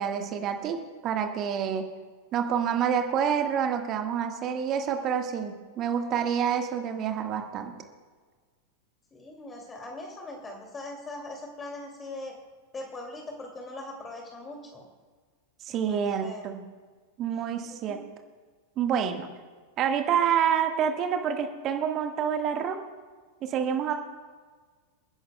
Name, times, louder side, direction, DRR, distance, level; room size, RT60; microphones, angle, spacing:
voice 1, 0.0-1.8 2.3-7.7 15.7-16.6 17.2-18.0 18.8-19.3 19.8-22.8 23.4-23.9, right 8 dB, 35° right, 5 dB, 1.5 m, -27 dB
voice 2, 9.1-12.4 12.7-14.8 15.7-16.5 17.6-18.0, left 2 dB, 15° left, 1 dB, 2.5 m, -41 dB
28.5 x 10.5 x 2.3 m, 1.5 s
figure-of-eight pair, 90°, 0 cm